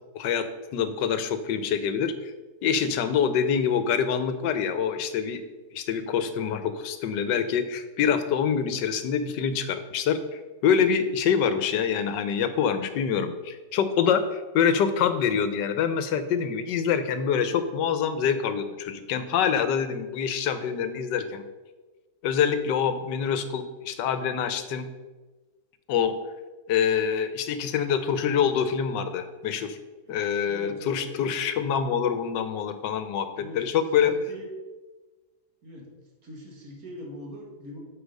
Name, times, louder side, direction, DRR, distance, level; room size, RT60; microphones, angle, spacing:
voice 1, 0.1-0.5 0.7-2.3 2.6-5.4 5.7-21.4 22.2-24.9 25.9-26.1 26.7-29.8 30.1-33.3 33.5-34.1, left 7 dB, 85° left, 10 dB, 1.4 m, -25 dB
voice 2, 30.4-31.1 33.4-33.7 34.1-34.5 35.6-35.9 36.2-37.8, equal, 55° right, -1 dB, 2.3 m, -41 dB
8.1 x 5.5 x 5.3 m, 1.2 s
omnidirectional pair, 1.9 m